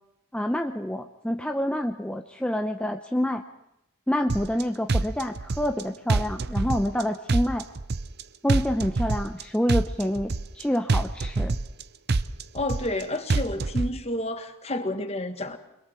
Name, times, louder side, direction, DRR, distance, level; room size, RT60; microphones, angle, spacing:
voice 1, 0.3-3.4 4.1-7.7 8.4-11.6, equal, 5° left, 4 dB, 0.7 m, -27 dB
sound 1, 4.3-4.6 4.9-5.8 6.1-7.0 7.3-8.2 8.5-9.4 9.7-10.6 10.9-11.8 12.1-13.0 13.3-13.9, right 3 dB, 45° right, 0.7 m, -25 dB
voice 2, 12.5-15.6, left 1 dB, 30° left, 7 dB, 1.8 m, -30 dB
29.0 x 22.0 x 4.5 m, 0.85 s
head